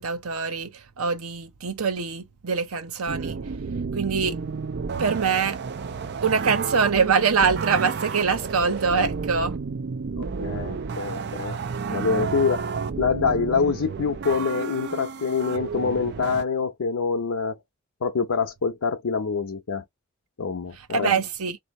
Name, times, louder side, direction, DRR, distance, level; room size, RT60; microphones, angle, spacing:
voice 1, 0.0-3.4 3.9-4.4 5.0-5.6 6.2-9.6 20.9-21.6, right 5 dB, 85° right, 0.7 m, -24 dB
sound 1, 3.1-16.4, right 5 dB, 50° right, 0.5 m, -31 dB
voice 2, 10.2-11.6 11.9-17.6 18.0-19.8 20.4-21.1, left 5 dB, 85° left, 0.7 m, -26 dB
3.4 x 2.8 x 4.1 m
head